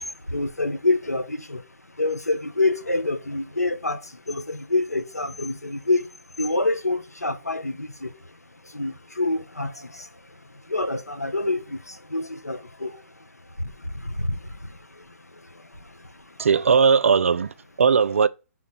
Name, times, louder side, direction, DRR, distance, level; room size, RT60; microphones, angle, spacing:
voice 1, 0.0-1.6 2.0-8.4 8.6-13.3 13.6-16.5, left 2 dB, 85° left, 0.8 m, -28 dB
voice 2, 16.4-18.3, right 6 dB, 60° right, 0.4 m, -19 dB
6.1 x 3.7 x 4.3 m
figure-of-eight pair, 130°, 8 cm